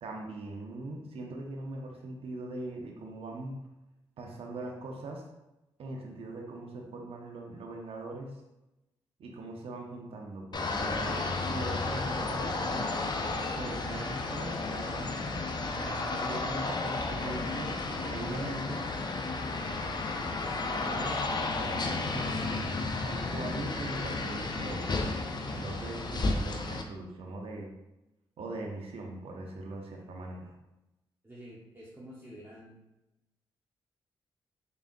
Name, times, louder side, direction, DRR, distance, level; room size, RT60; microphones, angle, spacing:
voice 1, 0.0-3.6 4.2-5.2 5.8-8.4 9.2-12.9 13.5-15.3 15.7-18.8 20.6-27.7 28.4-30.5, right 2 dB, 70° right, 1 dB, 0.7 m, -41 dB
sound 1, 10.5-26.8, left 3 dB, 45° left, 0.6 m, -33 dB
voice 2, 31.2-32.8, equal, 20° right, -7 dB, 1.0 m, -49 dB
3.9 x 3.5 x 2.5 m, 0.95 s
supercardioid pair, 50°, 10 cm